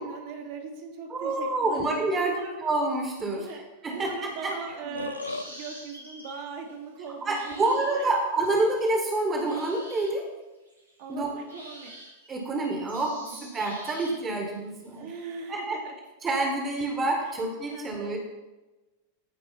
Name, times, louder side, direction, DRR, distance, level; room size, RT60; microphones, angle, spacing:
voice 1, 0.0-1.9 2.2-2.6 3.3-8.1 11.0-11.9 13.2-13.4 14.9-15.9 17.2-17.4 17.7-18.2, right 5 dB, 50° right, 0 dB, 1.9 m, -40 dB
voice 2, 1.1-3.4 3.8-4.5 4.8-5.0 7.2-10.2 11.1-11.3 12.3-15.1 15.5-15.8 16.2-18.2, right 2 dB, 20° right, 2 dB, 1.6 m, -28 dB
Burping eructation, 4.7-5.5, left 3 dB, 80° left, 0.4 m, -35 dB
sound 1, 5.0-6.7 7.3-10.2 10.7-11.1 11.5-14.5, right 1 dB, 85° right, 2.5 m, -47 dB
14.5 x 4.9 x 4.3 m, 1.1 s
figure-of-eight pair, 90°, 0 cm